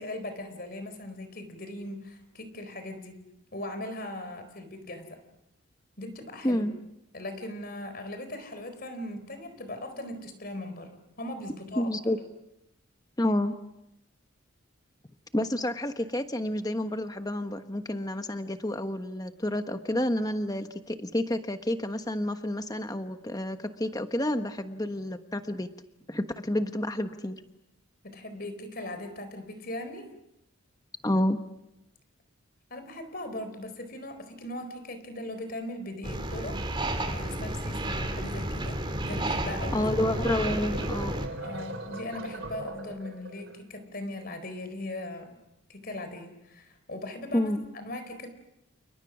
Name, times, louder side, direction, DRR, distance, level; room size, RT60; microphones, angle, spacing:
voice 1, 0.0-3.2 3.5-5.2 6.0-6.6 7.1-12.1 28.0-30.1 32.7-36.6 37.0-39.9 41.4-45.3 45.7-48.3, left 1 dB, 45° left, 9 dB, 4.2 m, -39 dB
voice 2, 6.4-6.8 11.8-12.2 13.2-13.5 15.3-25.7 26.1-27.4 31.0-31.4 39.7-41.2 47.3-47.6, left 1 dB, 15° left, 8 dB, 1.2 m, -29 dB
sound 1, 36.0-41.3, right 1 dB, 25° right, 3.0 m, -31 dB
sound 2, 39.9-43.6, right 2 dB, 65° right, 3.6 m, -39 dB
30.0 x 29.5 x 6.3 m, 0.89 s
head